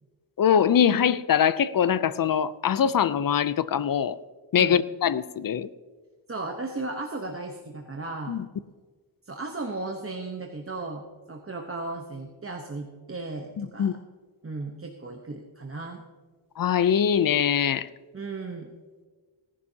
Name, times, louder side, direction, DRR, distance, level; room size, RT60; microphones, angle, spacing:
voice 1, 0.4-4.2 4.5-5.7 8.3-8.4 13.6-13.9 16.6-17.9, left 8 dB, 50° left, 16 dB, 0.5 m, -23 dB
voice 2, 6.3-8.4 9.2-13.9 14.4-16.0 18.1-18.7, right 3 dB, 30° right, 2 dB, 1.0 m, -35 dB
18.0 x 11.0 x 2.8 m, 1.4 s
wide cardioid pair, 95°, 46 cm